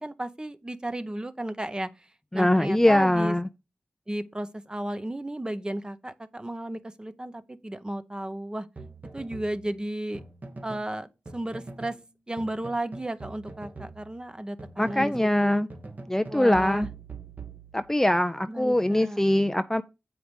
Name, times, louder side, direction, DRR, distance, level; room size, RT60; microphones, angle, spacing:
voice 1, 0.0-2.1 2.3-3.4 4.1-8.7 9.1-10.2 10.6-12.0 12.3-15.6 16.3-16.9 18.5-19.2, right 1 dB, 20° right, 0.9 m, -34 dB
voice 2, 2.3-3.5 14.8-15.7 16.1-16.9 17.7-19.8, left 1 dB, 10° left, 0.5 m, -22 dB
sound 1, 8.8-10.9 11.3-12.0 12.4-15.4 15.7-18.1, right 3 dB, 45° right, 1.5 m, -43 dB
7.8 x 4.9 x 5.2 m
cardioid pair, 45°, 4 cm